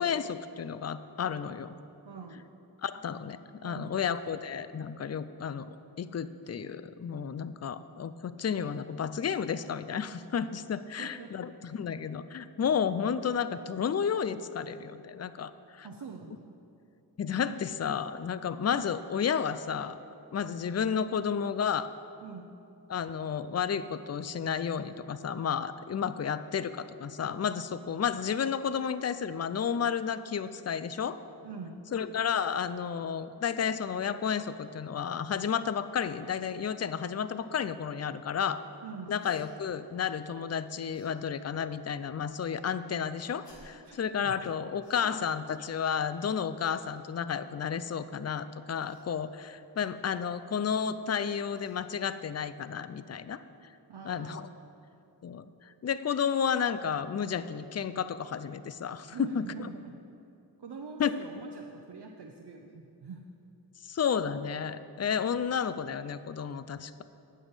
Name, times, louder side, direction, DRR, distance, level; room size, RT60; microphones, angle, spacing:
voice 1, 0.0-1.7 2.8-15.9 17.2-20.0 20.3-21.9 22.9-31.2 31.9-38.6 39.1-53.4 54.0-54.5 55.2-59.7 61.0-61.3 63.8-67.0, left 7 dB, 40° left, 14 dB, 0.5 m, -32 dB
voice 2, 2.0-2.5 3.6-4.0 11.0-11.3 15.8-16.6 22.2-22.5 27.8-28.0 31.4-31.8 38.8-39.2 43.9-44.0 44.2-44.5 45.0-45.2 53.9-54.5 59.1-60.0 60.6-63.3, right 5 dB, 70° right, 1 dB, 0.8 m, -44 dB
Cough, 39.2-39.5 40.9-41.1 43.4-43.9 44.8-45.1 46.6-46.8 48.8-49.1 50.9-51.0 51.5-51.8, left 1 dB, 80° left, 2.4 m, -58 dB
9.0 x 6.3 x 8.0 m, 2.7 s
cardioid pair, 45°, 42 cm